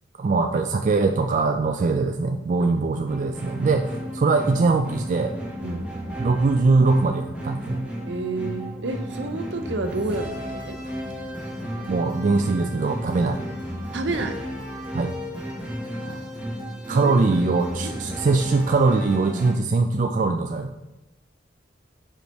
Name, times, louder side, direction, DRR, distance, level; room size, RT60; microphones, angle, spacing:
voice 1, 0.2-5.3 6.2-7.9 11.9-13.4 14.9-15.1 16.9-20.7, right 3 dB, 45° right, 6 dB, 0.3 m, -22 dB
sound 1, 3.1-19.5, equal, 5° right, 1.3 m, -33 dB
voice 2, 8.1-10.8 13.9-14.4 15.9-16.4 16.9-17.2 17.8-17.9, right 2 dB, 75° right, 7 dB, 0.7 m, -30 dB
5.0 x 5.0 x 4.5 m, 1.0 s
head